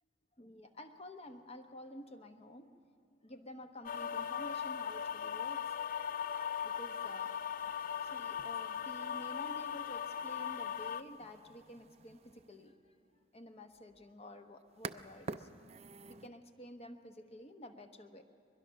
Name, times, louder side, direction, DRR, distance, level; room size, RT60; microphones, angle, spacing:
voice 1, 0.4-2.7 3.2-5.8 6.6-7.4 8.0-13.0 13.3-15.5 16.1-18.2, left 1 dB, 35° left, 7 dB, 1.0 m, -51 dB
sound 1, 3.8-11.0, left 8 dB, 50° left, 0.4 m, -39 dB
sound 2, 7.6-16.3, right 4 dB, 35° right, 0.4 m, -52 dB
22.0 x 22.0 x 6.3 m, 2.5 s
head